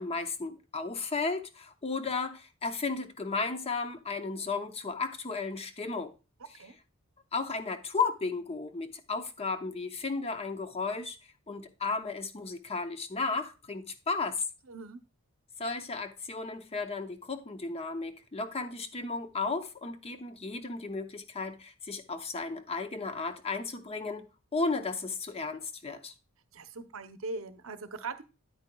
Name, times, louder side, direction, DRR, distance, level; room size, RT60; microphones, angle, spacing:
voice 1, 0.0-6.1 7.3-11.2 11.5-14.4 15.6-24.3 24.5-26.1, left 4 dB, 30° left, 0.7 m, -34 dB
voice 2, 14.7-15.0 26.5-28.2, right 3 dB, 70° right, 0.8 m, -40 dB
9.6 x 8.7 x 2.3 m
head